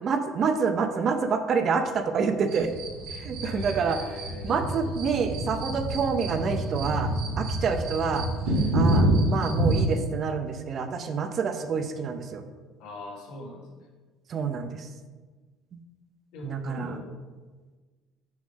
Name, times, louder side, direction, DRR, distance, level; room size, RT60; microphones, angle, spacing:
voice 1, 0.0-2.7 3.1-4.0 4.4-7.1 7.4-8.3 8.7-12.4 14.3-14.9 15.7-15.8 16.4-17.0, right 5 dB, 35° right, 8 dB, 0.4 m, -27 dB
sound 1, 2.5-10.0, right 1 dB, 90° right, 1.6 m, -27 dB
voice 2, 3.4-4.9 12.8-13.9 16.3-17.1, left 2 dB, 75° left, -3 dB, 1.7 m, -41 dB
6.1 x 5.4 x 3.7 m, 1.4 s
cardioid pair, 160°, 0 cm